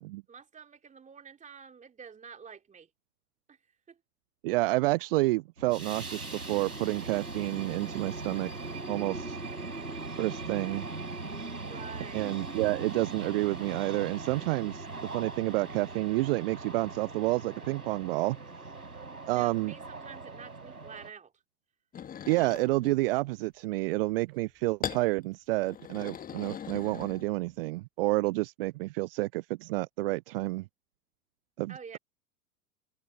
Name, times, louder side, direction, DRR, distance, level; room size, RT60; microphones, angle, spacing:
voice 1, 0.3-2.9 3.5-3.6 3.9-4.0 11.6-12.3 19.3-21.3 31.7-32.0, right 6 dB, 15° right, 2.7 m, -48 dB
voice 2, 4.4-8.5 8.9-9.4 10.2-10.9 12.1-18.4 19.3-19.7 22.3-30.7 31.6-32.0, right 21 dB, 40° right, 0.5 m, -29 dB
sound 1, 5.6-21.1, right 3 dB, 90° right, 4.3 m, -40 dB
sound 2, 21.9-23.0 24.8-25.1 25.6-27.5, left 8 dB, 20° left, 1.5 m, -40 dB
figure-of-eight pair, 95°, 44 cm